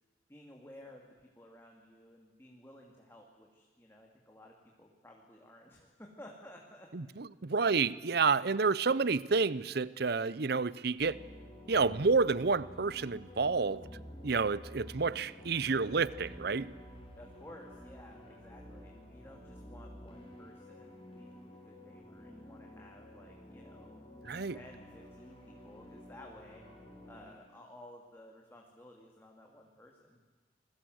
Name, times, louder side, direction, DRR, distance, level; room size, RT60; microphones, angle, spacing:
voice 1, 0.3-6.9 17.2-24.0 24.5-26.6 27.0-30.2, left 1 dB, 10° left, 0 dB, 2.5 m, -55 dB
voice 2, 6.9-11.2 11.7-13.8 14.2-16.7 24.2-24.6, right 4 dB, 55° right, 19 dB, 0.7 m, -29 dB
sound 1, 11.0-27.3, equal, 30° left, 6.4 m, -51 dB
28.5 x 21.5 x 7.9 m, 1.4 s
head